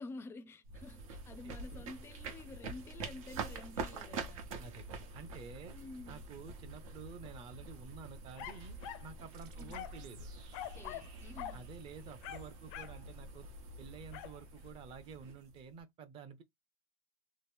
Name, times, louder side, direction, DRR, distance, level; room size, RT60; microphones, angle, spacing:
voice 1, 0.0-4.4 5.7-6.2 9.6-9.8 10.7-11.6, left 3 dB, 15° left, 0.4 m, -50 dB
sound 1, 0.6-15.8, right 3 dB, 90° right, 1.1 m, -46 dB
voice 2, 1.4-1.8 4.6-5.7 6.1-10.3 11.5-13.5 13.8-16.4, right 6 dB, 35° right, 0.6 m, -51 dB
sound 2, 8.4-9.1 9.7-10.1 10.5-11.1 11.4-11.6 12.2-13.0 14.1-14.4, left 12 dB, 70° left, 0.5 m, -45 dB
sound 3, 9.3-12.8, right 7 dB, 55° right, 0.9 m, -63 dB
2.9 x 2.1 x 3.5 m
supercardioid pair, 155°, 17 cm